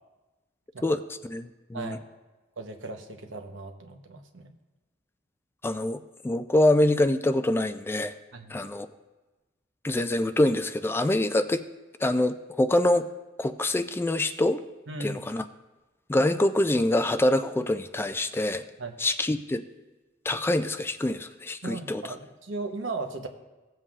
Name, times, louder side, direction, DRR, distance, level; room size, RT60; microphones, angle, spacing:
voice 1, 0.8-2.0 5.6-8.1 8.5-8.9 9.8-11.6 12.0-13.1 13.4-14.6 15.0-15.4 16.1-18.6 19.0-19.6 20.3-22.0, left 1 dB, 10° left, 10 dB, 0.3 m, -25 dB
voice 2, 2.6-4.5 8.3-8.6 14.9-15.3 18.8-18.9 21.6-23.3, right 3 dB, 75° right, 4 dB, 1.0 m, -37 dB
16.5 x 7.7 x 2.4 m, 1.1 s
head